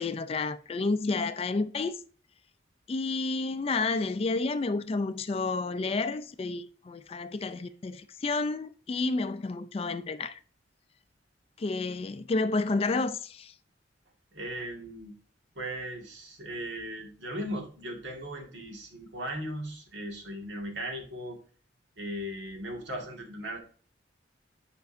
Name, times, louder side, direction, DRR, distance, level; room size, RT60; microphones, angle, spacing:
voice 1, 0.0-2.0 2.9-10.4 11.6-13.5, left 3 dB, 35° left, 0.4 m, -30 dB
voice 2, 14.3-15.2 15.6-21.4 22.0-23.6, equal, 80° right, 1.8 m, -37 dB
8.0 x 5.2 x 2.5 m
head